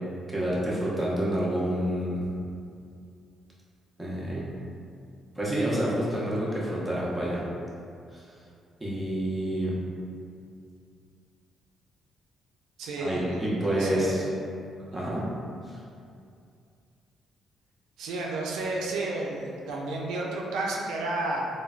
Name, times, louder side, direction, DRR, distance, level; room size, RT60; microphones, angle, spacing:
voice 1, 0.3-2.2 4.0-4.4 5.4-7.4 8.8-9.7 13.0-14.2 14.9-15.2 15.7-15.8, right 1 dB, 5° right, -7 dB, 0.7 m, -28 dB
voice 2, 12.8-14.2 14.9-15.2 18.0-21.5, right 2 dB, 85° right, -2 dB, 0.3 m, -32 dB
3.1 x 2.1 x 2.4 m, 2.4 s
cardioid pair, 90°, 0 cm